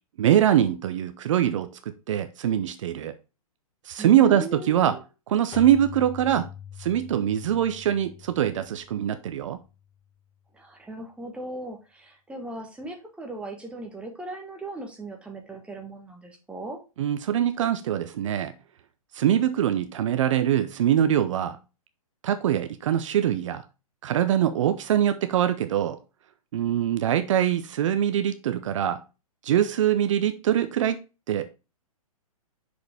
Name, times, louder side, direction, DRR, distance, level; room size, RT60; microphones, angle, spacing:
voice 1, 0.2-1.7 2.1-3.1 3.8-5.0 5.3-6.5 6.8-9.6 17.0-18.5 19.1-21.6 22.2-23.6 24.0-26.0 26.5-29.0 29.4-31.0 31.3-31.5, right 10 dB, 55° right, 0.6 m, -23 dB
voice 2, 4.0-5.0 10.5-16.8, right 2 dB, 5° right, 1.3 m, -38 dB
Keyboard (musical), 5.5-10.0, left 9 dB, 20° left, 0.9 m, -43 dB
6.2 x 4.9 x 3.4 m
hypercardioid pair, 125°, 19 cm